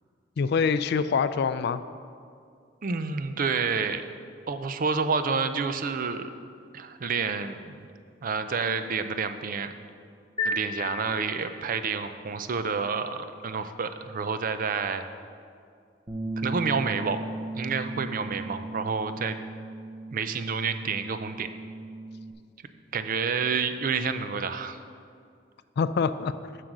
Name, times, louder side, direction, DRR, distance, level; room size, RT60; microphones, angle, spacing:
voice 1, 0.4-1.8 25.8-26.3, left 5 dB, 60° left, 13 dB, 0.3 m, -25 dB
voice 2, 2.8-4.0 4.5-6.3 6.7-7.7 8.2-9.7 10.4-15.0 16.4-17.2 17.5-19.4 20.1-21.5 22.9-24.8, right 5 dB, 45° right, 10 dB, 0.5 m, -29 dB
sound 1, 10.4-11.8, left 2 dB, 25° left, 1.4 m, -33 dB
Bass guitar, 16.1-22.3, right 2 dB, 25° right, 0.9 m, -37 dB
7.7 x 6.5 x 6.0 m, 2.3 s
head